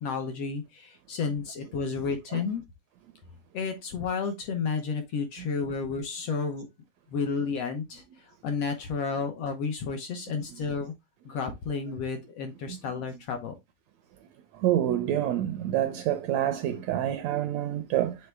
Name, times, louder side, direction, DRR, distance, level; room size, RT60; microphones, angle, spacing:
voice 1, 0.0-2.6 3.5-6.7 7.1-8.0 8.4-10.9 11.2-13.5, left 5 dB, 70° left, 1.6 m, -31 dB
voice 2, 14.6-18.1, right 12 dB, 80° right, 1.6 m, -27 dB
7.9 x 3.6 x 3.3 m
omnidirectional pair, 3.9 m